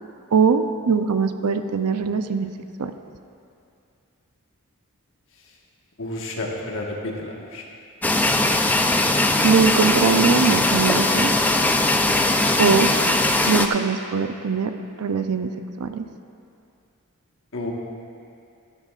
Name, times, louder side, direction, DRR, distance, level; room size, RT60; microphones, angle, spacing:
voice 1, 0.3-2.5 2.8-2.9 9.4-11.3 12.6-12.9 13.5-14.7 15.0-15.5 15.8-16.0, right 5 dB, 85° right, 9 dB, 0.5 m, -21 dB
voice 2, 6.0-7.6 17.5-17.7, left 2 dB, 60° left, -1 dB, 1.4 m, -31 dB
sound 1, 8.0-13.7, left 2 dB, 10° left, 0.3 m, -20 dB
13.5 x 12.5 x 2.4 m, 2.5 s
head